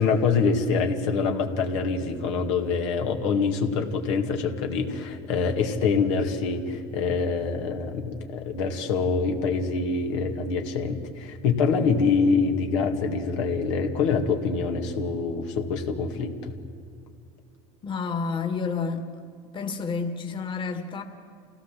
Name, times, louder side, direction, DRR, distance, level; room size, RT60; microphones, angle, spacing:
voice 1, 0.0-16.5, left 5 dB, 85° left, 2.3 m, -25 dB
voice 2, 17.8-19.1 19.5-21.0, left 5 dB, 35° left, 1.9 m, -29 dB
27.0 x 17.0 x 7.6 m
supercardioid pair, 110°, 15 cm